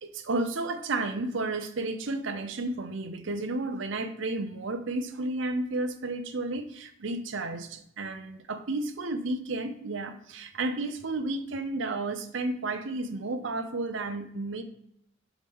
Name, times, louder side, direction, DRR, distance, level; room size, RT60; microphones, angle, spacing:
voice 1, 0.0-14.6, right 2 dB, 70° right, 8 dB, 0.7 m, -32 dB
7.1 x 4.9 x 3.6 m, 0.74 s
head